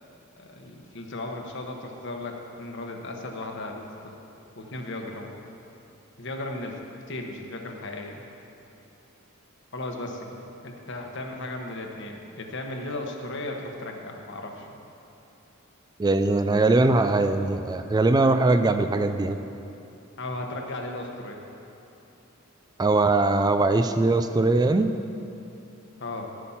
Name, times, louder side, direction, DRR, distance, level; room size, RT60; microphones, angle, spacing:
voice 1, 0.4-4.2 4.5-5.4 6.2-6.8 7.1-8.2 9.7-10.3 10.6-14.8 20.2-21.4 26.0-26.3, left 2 dB, 60° left, 2 dB, 1.2 m, -36 dB
voice 2, 16.0-19.4 22.8-24.9, right 2 dB, 20° right, 9 dB, 0.3 m, -21 dB
12.0 x 8.3 x 5.7 m, 2.9 s
head